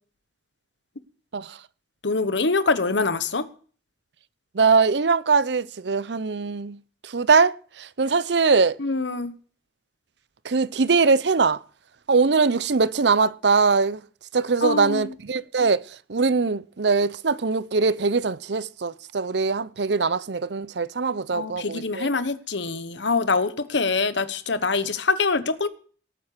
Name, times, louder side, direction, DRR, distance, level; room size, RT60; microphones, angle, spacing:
voice 1, 2.0-3.5 8.8-9.3 14.6-15.1 21.3-25.7, left 4 dB, 85° left, 1.2 m, -24 dB
voice 2, 4.5-6.8 7.0-8.8 10.4-11.6 12.1-14.0 14.3-15.8 16.1-22.1, right 4 dB, 70° right, 0.7 m, -22 dB
18.0 x 8.9 x 6.8 m
head